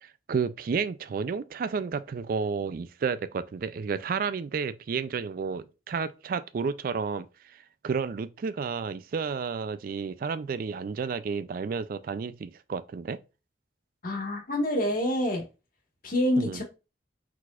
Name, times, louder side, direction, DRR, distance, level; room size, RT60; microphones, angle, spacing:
voice 1, 0.0-13.2 16.4-16.6, right 5 dB, 50° right, 0.3 m, -31 dB
voice 2, 14.0-15.4 16.0-16.6, left 1 dB, 50° left, 1.4 m, -27 dB
4.6 x 4.1 x 2.4 m
head